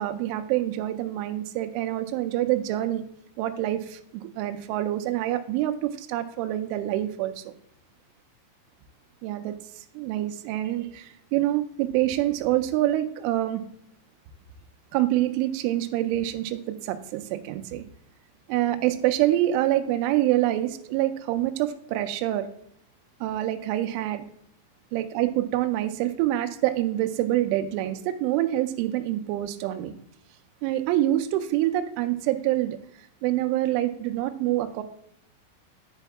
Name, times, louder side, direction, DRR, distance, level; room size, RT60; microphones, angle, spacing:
voice 1, 0.0-3.0 3.4-7.6 9.2-9.6 9.9-13.6 14.9-17.8 18.5-22.5 23.2-24.2 24.9-29.9 30.6-32.8 33.2-34.8, right 14 dB, 85° right, 7 dB, 2.8 m, -26 dB
9.9 x 4.6 x 3.5 m, 0.72 s
omnidirectional pair, 6.0 m